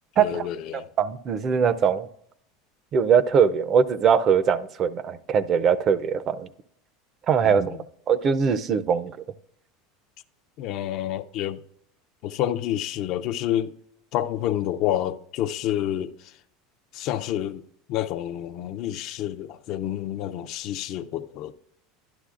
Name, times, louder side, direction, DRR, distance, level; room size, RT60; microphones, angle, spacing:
voice 1, 0.2-0.9 7.4-7.8 10.6-11.6 12.2-13.7 14.1-16.4 16.9-17.6 17.9-21.5, left 12 dB, 50° left, 0.4 m, -29 dB
voice 2, 1.0-2.1 2.9-6.5 7.3-7.8 8.1-9.1, right 7 dB, 35° right, 0.4 m, -21 dB
11.5 x 11.0 x 2.4 m
supercardioid pair, 145°, 0 cm